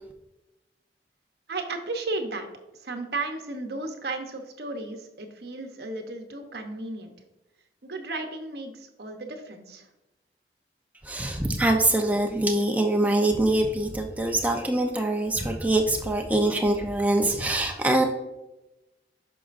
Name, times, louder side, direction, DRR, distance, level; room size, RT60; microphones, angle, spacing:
voice 1, 1.5-2.5 2.7-7.1 7.8-9.9, right 2 dB, 65° right, 5 dB, 0.9 m, -34 dB
voice 2, 11.0-18.0, right 1 dB, 10° right, 3 dB, 0.7 m, -24 dB
9.2 x 6.1 x 2.6 m, 0.99 s
head